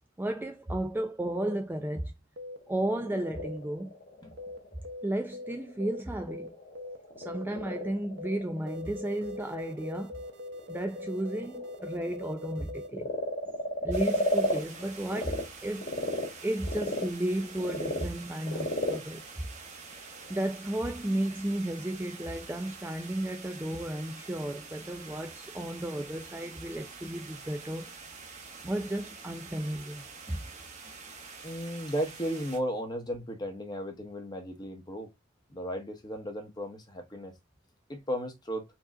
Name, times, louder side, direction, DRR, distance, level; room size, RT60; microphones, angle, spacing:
voice 1, 0.2-2.1 2.7-4.0 5.0-6.5 7.2-10.1 10.7-13.1 13.8-16.0 16.4-19.2 20.3-27.9 28.6-30.4, right 1 dB, 10° right, 0.4 m, -33 dB
sound 1, 1.4-1.6 2.4-2.6 3.4-3.6 4.4-4.6 4.8-5.1 5.3-5.5 5.8-6.0 6.3-6.5 6.8-7.0 7.2-7.4 7.7-7.9 8.2-8.4 8.7-12.9, left 2 dB, 60° right, 0.8 m, -42 dB
Frog, 2.5-15.4 15.8-20.4, left 1 dB, 45° left, 2.1 m, -35 dB
sound 2, 13.9-32.6, right 4 dB, 40° right, 1.1 m, -47 dB
voice 2, 31.4-35.1 35.5-37.3 37.9-38.6, equal, 20° left, 1.2 m, -35 dB
4.5 x 2.9 x 3.6 m
head